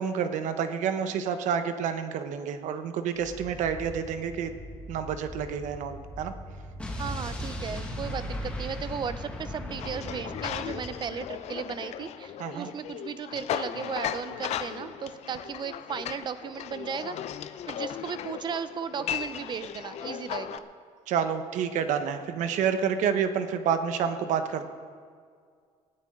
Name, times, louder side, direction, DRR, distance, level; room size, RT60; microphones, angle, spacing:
voice 1, 0.0-4.5 4.9-6.3 12.4-12.7 21.1-24.6, right 7 dB, 70° right, 9 dB, 1.1 m, -29 dB
sound 1, 3.1-8.9, right 1 dB, 10° right, 3.0 m, -42 dB
Explosion, 6.8-11.6, left 1 dB, 10° left, 1.9 m, -37 dB
voice 2, 7.0-17.2 17.7-20.7, right 7 dB, 35° right, 13 dB, 0.7 m, -36 dB
sound 2, 9.8-20.6, left 10 dB, 55° left, 0.6 m, -36 dB
19.5 x 13.0 x 3.8 m, 2.1 s
cardioid pair, 140°, 13 cm